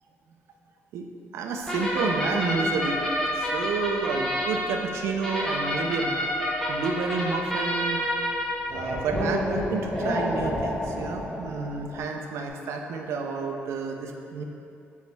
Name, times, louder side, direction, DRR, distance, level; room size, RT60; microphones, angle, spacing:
voice 1, 1.3-3.1 3.3-6.3 6.7-8.1 8.7-14.4, right 4 dB, 80° right, 3 dB, 0.4 m, -30 dB
sound 1, 1.7-12.0, equal, 10° left, 0.8 m, -29 dB
3.9 x 3.1 x 3.3 m, 2.6 s
cardioid pair, 110°, 5 cm